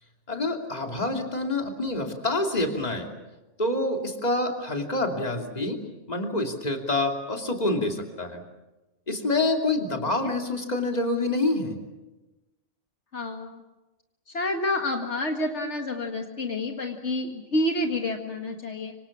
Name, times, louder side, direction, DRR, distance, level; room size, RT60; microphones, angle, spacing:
voice 1, 0.3-3.1 3.6-8.4 9.1-11.8, left 2 dB, 35° left, 3 dB, 3.0 m, -27 dB
voice 2, 13.1-13.6 14.3-18.9, left 1 dB, 70° left, 4 dB, 2.1 m, -29 dB
25.5 x 25.0 x 7.3 m, 1.1 s
omnidirectional pair, 1.2 m